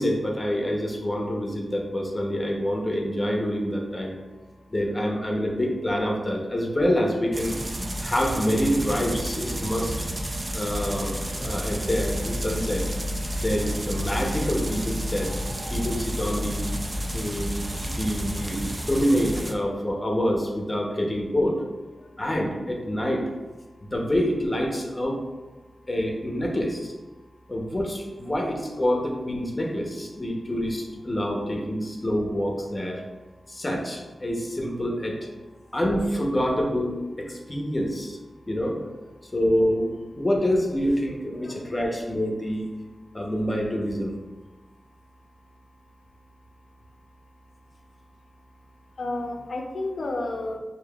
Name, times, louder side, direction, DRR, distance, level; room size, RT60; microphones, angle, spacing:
voice 1, 0.0-4.2 4.7-7.6 8.0-9.9 10.5-12.9 13.4-15.4 15.7-16.7 17.1-17.6 17.8-21.6 22.2-23.3 23.9-25.2 25.9-26.9 27.5-33.0 33.5-35.3 35.7-38.2 38.5-38.8 39.3-42.7 43.1-44.2, equal, 20° left, 0 dB, 0.7 m, -26 dB
sound 1, 7.3-19.5, equal, 20° right, 0.4 m, -30 dB
voice 2, 49.0-50.6, left 2 dB, 55° left, 2 dB, 0.6 m, -31 dB
6.7 x 2.8 x 2.3 m, 1.2 s
wide cardioid pair, 120°, 0 cm